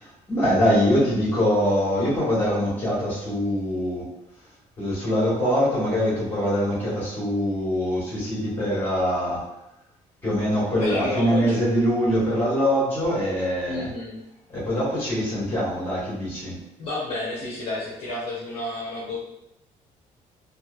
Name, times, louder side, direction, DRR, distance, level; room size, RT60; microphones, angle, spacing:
voice 1, 0.0-4.1 4.8-9.4 10.2-13.9 14.5-16.6, equal, 15° left, -8 dB, 1.4 m, -23 dB
voice 2, 10.8-11.6 13.7-14.2 16.8-19.2, left 2 dB, 45° left, -7 dB, 0.7 m, -30 dB
2.9 x 2.3 x 2.3 m, 0.85 s
cardioid pair, 180°, 13 cm